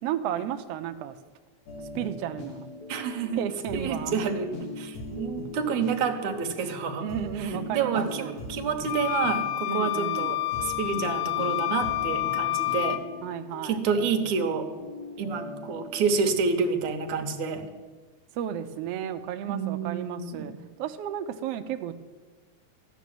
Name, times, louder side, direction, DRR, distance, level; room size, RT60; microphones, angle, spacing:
voice 1, 0.0-1.2 1.9-2.7 3.4-4.1 7.0-8.4 9.7-10.4 13.2-13.8 18.3-20.5 20.8-21.9, right 10 dB, 85° right, 8 dB, 1.3 m, -33 dB
sound 1, 1.7-16.3, left 2 dB, 65° left, 3.0 m, -40 dB
voice 2, 2.9-3.4 3.7-4.5 4.8-7.1 7.4-13.0 13.6-14.7 15.2-17.7 19.5-20.5, right 5 dB, 70° right, 5 dB, 2.4 m, -28 dB
sound 2, 8.9-13.0, left 18 dB, 85° left, 2.1 m, -28 dB
15.0 x 6.2 x 9.3 m, 1.4 s
omnidirectional pair, 3.7 m